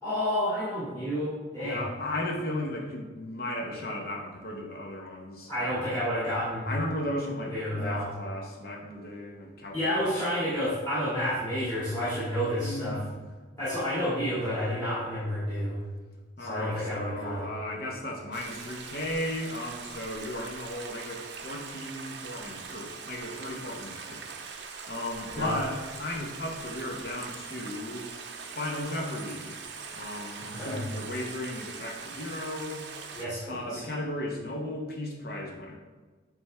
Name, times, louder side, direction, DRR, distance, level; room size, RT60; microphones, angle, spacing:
voice 1, 0.0-1.8 5.5-6.7 7.5-8.1 9.7-13.0 13.6-15.8 16.4-17.5 25.3-25.6 30.4-30.9 33.1-33.8, equal, 15° left, -12 dB, 2.0 m, -30 dB
voice 2, 1.6-5.5 6.6-10.1 12.6-13.3 16.4-24.2 24.9-28.1 28.5-29.6 29.9-32.8 33.5-35.8, left 1 dB, 50° left, -1 dB, 0.9 m, -35 dB
Stream, 18.3-33.3, right 5 dB, 55° right, 0.6 m, -42 dB
9.2 x 3.5 x 3.3 m, 1.4 s
head